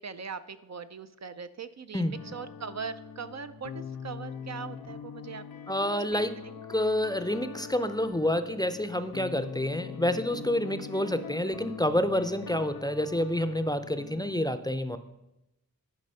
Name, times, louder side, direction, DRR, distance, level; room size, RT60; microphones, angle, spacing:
voice 1, 0.0-5.4 6.1-6.3, right 6 dB, 50° right, 11 dB, 0.4 m, -40 dB
sound 1, 2.1-14.4, left 7 dB, 85° left, 0.8 m, -42 dB
voice 2, 5.7-6.3 6.7-15.0, left 1 dB, 10° left, 11 dB, 0.5 m, -28 dB
11.0 x 5.0 x 5.4 m, 0.89 s
wide cardioid pair, 85°, 35 cm